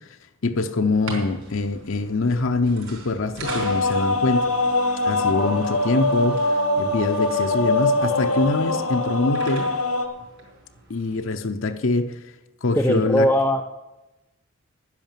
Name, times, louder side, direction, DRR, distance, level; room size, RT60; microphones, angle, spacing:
voice 1, 0.4-4.5 5.0-9.7 10.9-12.2 12.6-13.3, left 3 dB, 60° left, 0.7 m, -24 dB
sound 1, 0.9-11.2, right 3 dB, 65° right, 4.4 m, -40 dB
sound 2, 3.4-10.1, left 2 dB, 80° left, 1.5 m, -23 dB
voice 2, 12.7-13.6, equal, 5° left, 0.4 m, -19 dB
10.5 x 10.0 x 7.4 m
head